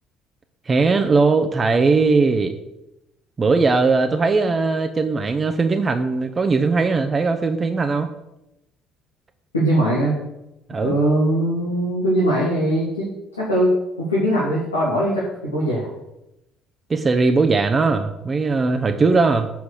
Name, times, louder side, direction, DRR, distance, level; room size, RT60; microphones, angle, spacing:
voice 1, 0.7-2.5 3.4-8.1 10.7-11.0 16.9-19.5, right 4 dB, 30° right, 7 dB, 0.8 m, -19 dB
voice 2, 9.5-10.1 10.8-13.1 13.4-15.9, right 1 dB, 85° left, -6 dB, 1.8 m, -20 dB
7.5 x 5.8 x 6.4 m, 0.90 s
figure-of-eight pair, 50°, 0 cm